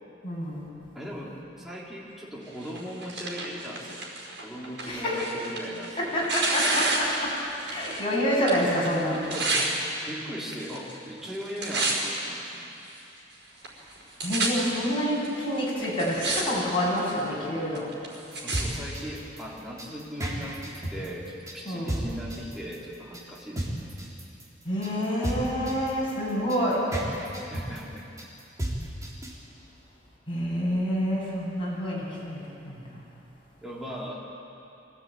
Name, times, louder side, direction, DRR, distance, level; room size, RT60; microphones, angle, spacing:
voice 1, 0.2-0.7 4.9-5.2 6.0-7.3 7.6-9.2 14.2-17.9 21.6-22.0 24.6-26.8 30.3-32.4 32.6-32.9, equal, 30° left, -6 dB, 8.0 m, -27 dB
voice 2, 0.9-4.0 4.4-6.3 9.3-9.7 10.0-12.7 18.4-23.6 27.5-28.1 33.6-34.2, equal, ahead, -5 dB, 3.2 m, -39 dB
Tearing, 2.6-8.1 8.3-9.7 10.4-10.9 11.2-12.2 12.8-12.9 13.6-13.7 13.9-14.5 15.2-15.3 15.8-16.4 16.7-17.2 17.7-18.6 19.4-19.5, right 3 dB, 75° right, 5.2 m, -30 dB
sound 1, 18.3-29.3, right 1 dB, 20° right, 3.6 m, -33 dB
24.5 x 17.0 x 9.0 m, 2.8 s
head